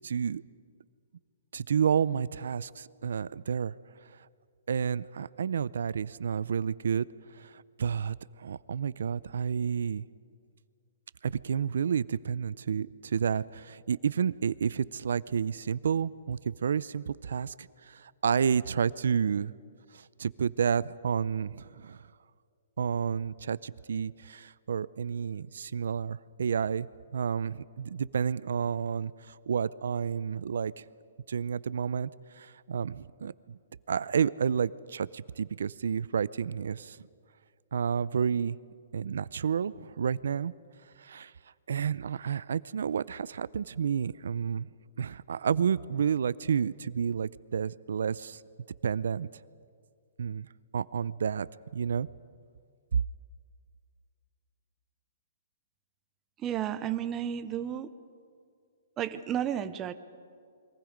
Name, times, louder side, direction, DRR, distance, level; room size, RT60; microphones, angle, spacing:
voice 1, 0.0-0.4 1.5-3.7 4.7-7.1 7.4-10.0 11.2-19.5 19.9-22.0 22.8-30.8 31.3-32.1 32.3-33.6 33.9-37.0 37.7-38.6 38.9-40.5 41.0-41.3 41.7-44.7 45.0-48.4 48.8-49.3 50.2-50.5 50.7-51.5 51.7-52.1, right 7 dB, 70° right, 19 dB, 0.5 m, -30 dB
voice 2, 56.4-57.9 59.0-59.9, right 10 dB, 15° right, 11 dB, 0.5 m, -32 dB
29.5 x 22.5 x 5.1 m, 2.2 s
hypercardioid pair, 180°, 0 cm